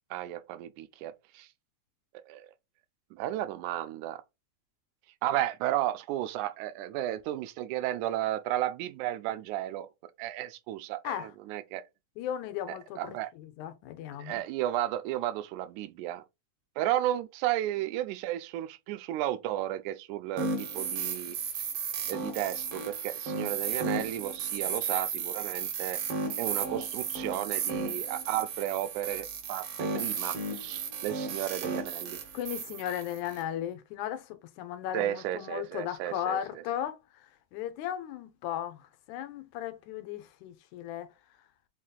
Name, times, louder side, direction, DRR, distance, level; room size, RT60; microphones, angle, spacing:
voice 1, 0.1-1.5 2.3-2.5 3.1-4.2 5.2-9.9 10.2-11.8 12.7-13.3 14.2-16.2 16.8-21.4 22.1-26.0 26.4-32.2 34.9-36.4, right 13 dB, 85° right, 2.0 m, -33 dB
voice 2, 12.2-14.4 32.3-37.3 37.5-41.1, left 11 dB, 85° left, 2.1 m, -36 dB
sound 1, 20.4-33.4, right 5 dB, 65° right, 1.5 m, -34 dB
5.8 x 2.7 x 2.3 m
omnidirectional pair, 3.3 m